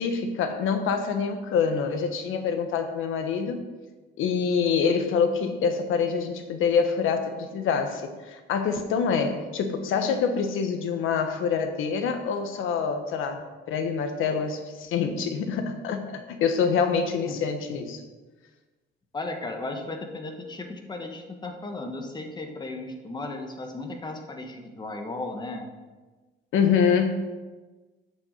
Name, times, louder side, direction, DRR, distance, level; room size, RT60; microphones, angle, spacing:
voice 1, 0.0-3.6 4.2-13.4 13.7-18.0 26.5-27.3, left 6 dB, 80° left, 7 dB, 1.2 m, -26 dB
voice 2, 19.1-25.7, left 2 dB, 20° left, 4 dB, 1.3 m, -35 dB
8.1 x 6.9 x 6.7 m, 1.3 s
cardioid pair, 150°, 20 cm